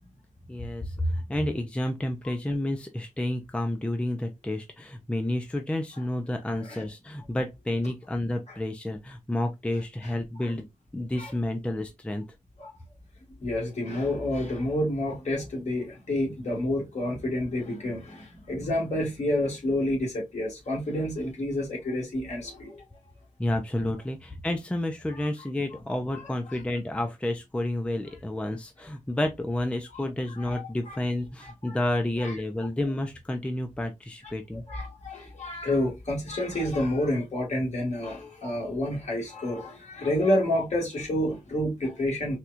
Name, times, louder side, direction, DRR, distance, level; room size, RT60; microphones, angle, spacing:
voice 1, 0.5-10.7 10.9-12.2 23.4-34.6, left 1 dB, 10° left, 0.5 m, -30 dB
voice 2, 10.0-10.5 11.2-11.3 12.6-12.7 13.4-22.8 26.1-26.6 29.9-30.0 30.3-31.0 31.4-31.8 32.2-32.4 34.5-42.4, left 1 dB, 55° left, 1.8 m, -29 dB
4.3 x 2.3 x 2.5 m
wide cardioid pair, 90°, 14 cm